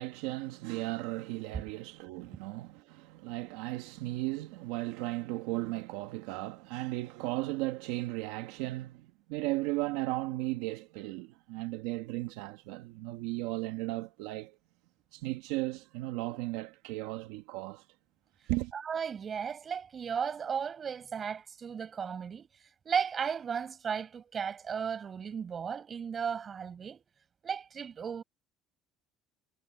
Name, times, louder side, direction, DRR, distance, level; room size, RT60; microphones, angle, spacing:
voice 1, 0.0-14.5 15.1-17.8 18.5-18.7, right 19 dB, 90° right, 1.6 m, -36 dB
voice 2, 18.7-22.5 22.9-27.0 27.4-28.2, right 7 dB, 35° right, 5.3 m, -35 dB
cardioid pair, 120°, 0 cm